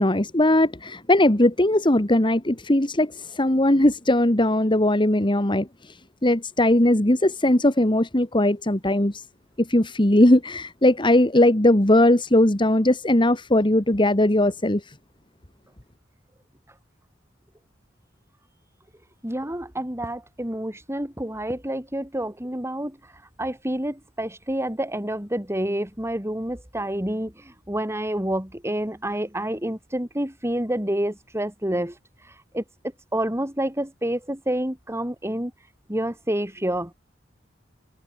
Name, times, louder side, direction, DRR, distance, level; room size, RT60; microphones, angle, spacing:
voice 1, 0.0-5.7 6.2-9.2 9.6-14.8, left 1 dB, 25° left, 2.0 m, -19 dB
voice 2, 19.2-23.0 23.4-32.0 32.5-32.6 33.1-35.5 35.9-36.9, right 1 dB, 15° right, 5.4 m, -28 dB
head